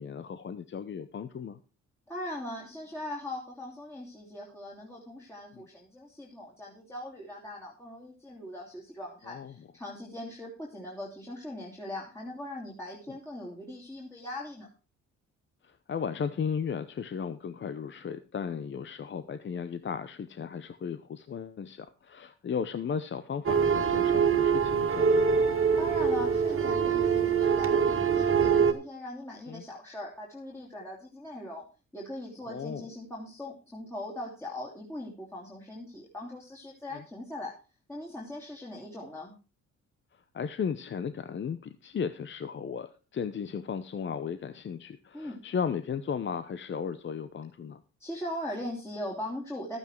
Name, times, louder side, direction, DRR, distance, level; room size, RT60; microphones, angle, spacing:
voice 1, 0.0-1.6 5.5-5.7 9.3-9.5 13.1-13.2 15.6-25.5 29.5-29.6 32.5-32.9 36.9-37.0 40.3-47.8, left 6 dB, 40° left, 12 dB, 0.8 m, -35 dB
voice 2, 2.1-14.7 25.8-31.6 31.9-37.5 37.9-39.3 45.1-45.4 48.0-49.8, left 1 dB, 10° left, -4 dB, 2.9 m, -40 dB
sound 1, 23.4-28.7, right 6 dB, 45° right, 1.9 m, -24 dB
12.5 x 9.0 x 4.5 m, 0.34 s
cardioid pair, 90°, 30 cm